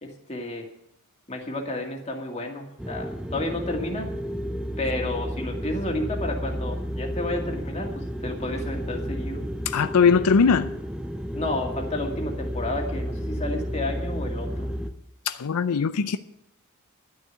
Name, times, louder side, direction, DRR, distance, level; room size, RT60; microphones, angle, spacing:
voice 1, 0.0-0.7 1.3-4.1 4.8-9.4 11.3-14.7, left 2 dB, 30° left, 2.1 m, -31 dB
sound 1, 2.8-14.9, equal, 5° right, 0.6 m, -32 dB
voice 2, 9.7-10.7 15.3-16.2, left 5 dB, 85° left, 0.5 m, -20 dB
11.5 x 6.6 x 9.3 m
head